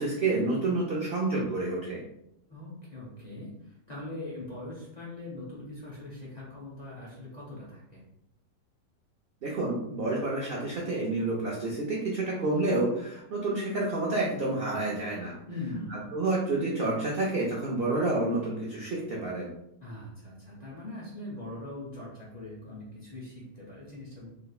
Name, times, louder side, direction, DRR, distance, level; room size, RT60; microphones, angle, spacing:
voice 1, 0.0-2.0 9.4-15.3 15.9-19.5, right 2 dB, 80° right, -3 dB, 0.5 m, -29 dB
voice 2, 2.5-8.0 15.5-16.1 19.8-24.3, left 2 dB, 40° left, -7 dB, 0.6 m, -41 dB
3.3 x 3.0 x 2.3 m, 0.80 s
omnidirectional pair, 1.8 m